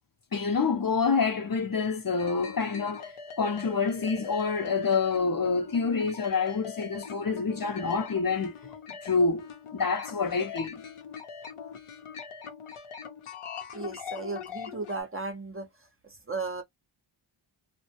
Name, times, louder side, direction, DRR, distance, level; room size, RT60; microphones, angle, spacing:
voice 1, 0.3-8.6 9.0-9.5 9.7-10.8, left 5 dB, 45° left, 0.7 m, -27 dB
sound 1, 2.2-15.0, left 6 dB, 85° left, 0.7 m, -42 dB
voice 2, 13.7-15.7 16.0-16.6, right 3 dB, 25° right, 0.6 m, -35 dB
2.1 x 2.1 x 2.8 m
cardioid pair, 40°, 49 cm